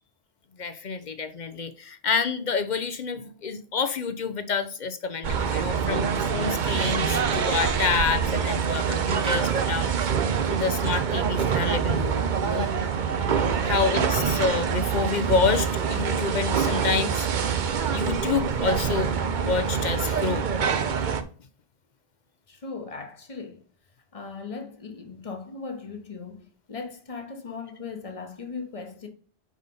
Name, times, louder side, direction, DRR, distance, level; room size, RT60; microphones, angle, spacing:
voice 1, 0.6-9.9 10.5-12.7 13.6-17.3 17.6-19.1 19.4-20.5, left 5 dB, 50° left, 0.7 m, -28 dB
sound 1, 5.2-21.2, right 7 dB, 55° right, 0.7 m, -25 dB
voice 2, 13.6-14.1 22.5-23.6 24.1-29.1, left 4 dB, 35° left, 1.0 m, -38 dB
4.9 x 4.0 x 5.2 m
omnidirectional pair, 1.1 m